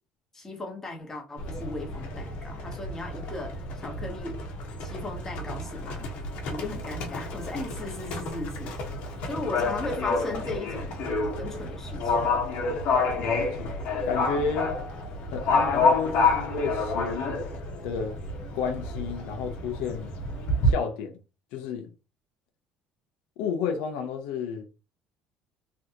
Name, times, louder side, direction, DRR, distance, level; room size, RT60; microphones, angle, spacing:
voice 1, 0.3-4.4 4.8-6.0 6.5-8.8 9.2-11.0 11.4-12.3, left 2 dB, 20° left, 1.3 m, -37 dB
Livestock farm animals working animals, 1.4-20.7, left 2 dB, 65° left, 1.1 m, -29 dB
voice 2, 13.1-13.7 14.0-14.7 15.3-17.4 17.8-18.2 18.5-20.1 20.6-21.2 21.5-21.9 23.4-24.7, left 6 dB, 85° left, 0.8 m, -31 dB
3.4 x 2.5 x 2.9 m
cardioid pair, 115°, 2 cm